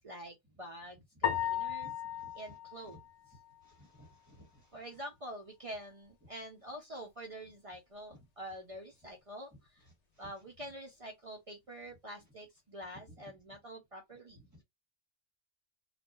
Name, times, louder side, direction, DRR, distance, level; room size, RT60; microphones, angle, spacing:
voice 1, 0.0-1.9 2.3-3.0 4.7-9.9 10.2-14.4, equal, 65° right, 0.3 m, -47 dB
sound 1, 1.2-3.7, left 9 dB, 50° left, 0.5 m, -36 dB
voice 2, 1.6-2.3 3.6-4.7 14.3-14.6, equal, 15° right, 1.4 m, -58 dB
2.4 x 2.2 x 2.9 m
omnidirectional pair, 1.3 m